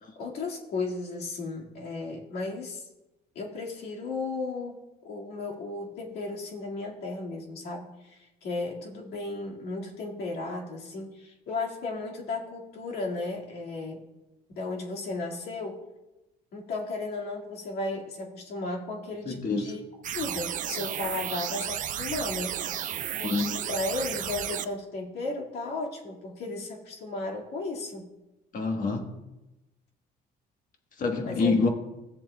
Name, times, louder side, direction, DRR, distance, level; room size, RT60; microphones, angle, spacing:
voice 1, 0.2-2.8 3.4-4.8 5.0-14.0 14.5-15.8 16.5-19.8 20.1-22.9 23.2-28.1 31.2-31.5, left 3 dB, 70° left, 2.0 m, -35 dB
voice 2, 19.2-19.7 23.2-23.5 28.5-29.1 31.0-31.7, left 4 dB, 50° left, 1.4 m, -26 dB
sound 1, 20.0-24.6, right 10 dB, 50° right, 0.5 m, -33 dB
16.5 x 7.4 x 2.3 m
cardioid pair, 110°, 17 cm